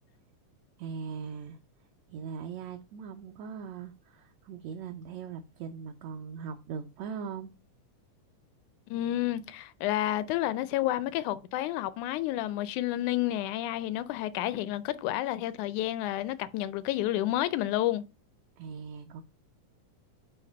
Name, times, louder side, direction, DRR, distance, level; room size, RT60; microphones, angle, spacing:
voice 1, 0.8-1.6 2.1-7.5 18.6-19.2, right 6 dB, 75° right, 1.7 m, -40 dB
voice 2, 8.9-18.0, left 14 dB, 80° left, 1.8 m, -30 dB
8.5 x 2.9 x 5.2 m
omnidirectional pair, 3.6 m